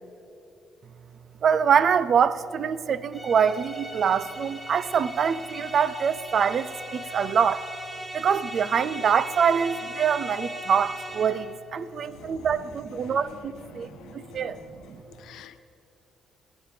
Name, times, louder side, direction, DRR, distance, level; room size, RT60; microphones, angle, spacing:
voice 1, 1.4-7.7 8.1-14.6 14.9-15.0, right 7 dB, 55° right, 16 dB, 0.5 m, -24 dB
sound 1, 3.1-11.6, equal, 10° right, 2.0 m, -38 dB
voice 2, 13.7-14.5 15.2-15.6, left 10 dB, 85° left, 12 dB, 0.6 m, -47 dB
20.0 x 9.2 x 5.1 m, 2.7 s
cardioid pair, 90°, 0 cm